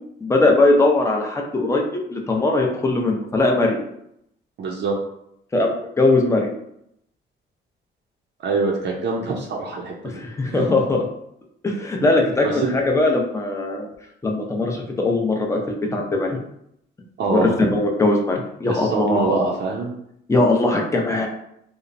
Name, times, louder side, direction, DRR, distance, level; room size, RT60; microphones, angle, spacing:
voice 1, 0.2-1.8 2.1-3.8 5.5-6.5 10.0-11.1 11.6-13.9 14.2-16.4 17.3-19.4 20.3-21.3, left 2 dB, 15° left, 0 dB, 0.5 m, -20 dB
voice 2, 4.6-5.0 8.4-10.2 10.5-10.7 12.4-12.7 17.2-17.7 18.7-19.9, right 3 dB, 60° right, -1 dB, 0.5 m, -24 dB
2.9 x 2.0 x 2.5 m, 0.76 s
cardioid pair, 90°, 20 cm